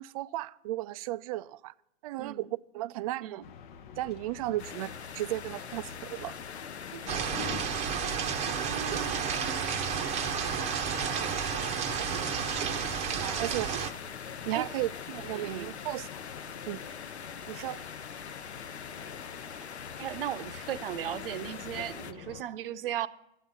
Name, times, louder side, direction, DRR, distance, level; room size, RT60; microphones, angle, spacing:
voice 1, 0.0-1.7 2.0-3.4 4.0-6.4 6.9-7.0 13.1-13.8 14.4-16.1 16.7-16.8 17.5-17.8, right 16 dB, 35° right, 0.4 m, -35 dB
voice 2, 2.2-2.5 3.2-3.4 8.5-9.5 11.2-11.7 13.7-13.8 14.5-14.7 15.3-15.8 20.0-23.1, right 11 dB, 60° right, 0.7 m, -37 dB
sound 1, 3.4-22.4, left 7 dB, 45° left, 0.8 m, -47 dB
sound 2, 4.6-22.1, left 7 dB, 90° left, 0.7 m, -43 dB
sound 3, 7.1-13.9, right 8 dB, 20° right, 0.8 m, -31 dB
13.0 x 9.2 x 5.4 m
hypercardioid pair, 115°, 32 cm